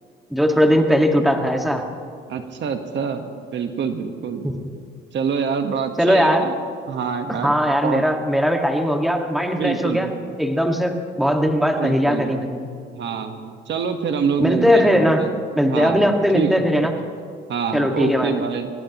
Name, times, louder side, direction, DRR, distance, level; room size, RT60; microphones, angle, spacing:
voice 1, 0.3-1.8 4.4-4.6 6.0-6.5 7.3-10.1 10.4-12.7 14.4-15.2 15.6-17.0 17.7-18.4, equal, ahead, 3 dB, 1.8 m, -19 dB
voice 2, 2.3-4.4 5.1-6.5 6.9-8.0 9.5-10.4 11.8-12.5 12.9-15.4 15.7-16.9 17.5-18.7, right 6 dB, 65° right, 6 dB, 1.3 m, -26 dB
24.5 x 18.5 x 3.0 m, 2.3 s
cardioid pair, 90°, 20 cm